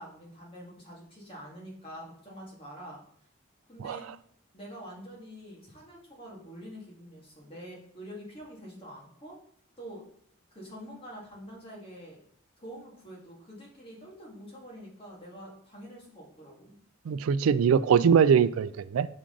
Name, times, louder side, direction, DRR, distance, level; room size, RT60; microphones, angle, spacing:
voice 1, 0.0-3.0 3.7-4.1 4.5-9.3 9.8-10.0 10.5-12.2 12.6-16.8, equal, 25° left, 2.0 m, -46 dB
voice 2, 17.1-19.1, right 7 dB, 85° right, 0.3 m, -22 dB
6.1 x 4.8 x 3.8 m
head